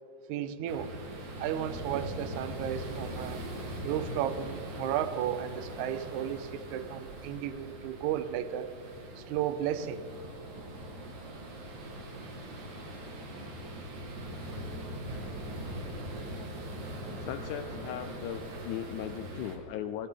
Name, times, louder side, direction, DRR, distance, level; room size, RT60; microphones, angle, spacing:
voice 1, 0.3-0.9 1.4-3.4 3.8-8.7 9.2-10.1, right 10 dB, 80° right, 13 dB, 1.8 m, -34 dB
sound 1, 0.7-19.6, right 1 dB, 60° right, 3.3 m, -41 dB
voice 2, 17.2-20.1, left 10 dB, 85° left, 9 dB, 1.7 m, -38 dB
18.0 x 16.5 x 3.7 m, 2.1 s
omnidirectional pair, 4.1 m